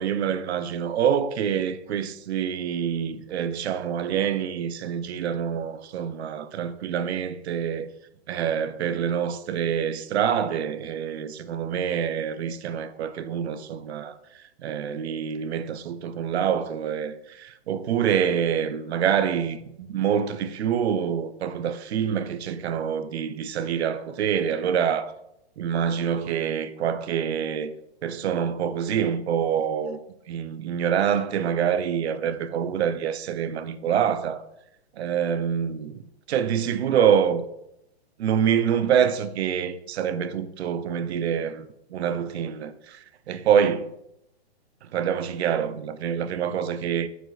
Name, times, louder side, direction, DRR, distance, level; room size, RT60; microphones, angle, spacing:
voice 1, 0.0-7.9 8.3-14.2 14.6-25.1 25.6-27.7 28.0-30.0 30.3-34.4 35.0-36.0 36.3-37.5 38.2-41.7 41.9-43.9 44.8-47.1, right 8 dB, 80° right, 0.5 m, -26 dB
4.7 x 4.6 x 2.3 m
hypercardioid pair, 175°, 32 cm